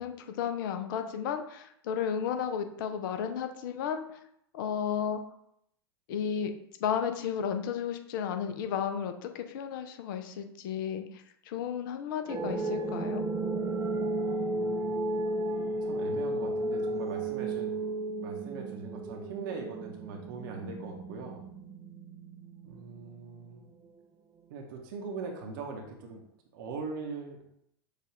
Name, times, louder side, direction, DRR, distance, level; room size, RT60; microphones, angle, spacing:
voice 1, 0.0-4.2 4.5-5.2 6.1-6.5 6.8-13.3, left 8 dB, 55° left, 7 dB, 0.6 m, -33 dB
sound 1, 12.3-23.3, right 2 dB, 20° right, 0.5 m, -34 dB
voice 2, 14.5-15.0 15.5-17.7 18.2-21.4 22.6-23.6 24.5-26.2 26.5-27.4, right 4 dB, 55° right, 1 dB, 0.8 m, -41 dB
6.6 x 2.4 x 3.1 m, 0.73 s
figure-of-eight pair, 90°, 13 cm